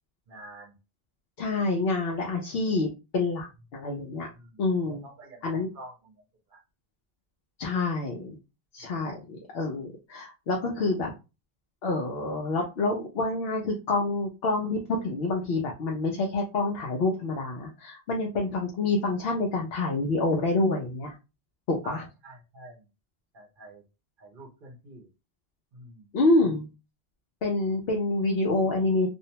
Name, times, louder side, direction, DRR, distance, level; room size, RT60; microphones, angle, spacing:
voice 1, 0.3-0.8 4.3-6.2 6.5-6.6 8.8-9.1 21.8-22.9 23.3-23.8 24.2-25.1 25.7-26.1, right 2 dB, 60° right, 2 dB, 0.8 m, -47 dB
voice 2, 1.4-4.3 4.6-5.0 5.4-5.7 7.6-8.4 8.7-11.1 11.8-21.1 21.7-22.0 26.1-26.7 27.4-29.1, left 2 dB, 75° left, 0 dB, 0.8 m, -27 dB
2.6 x 2.0 x 2.8 m, 0.28 s
omnidirectional pair, 1.1 m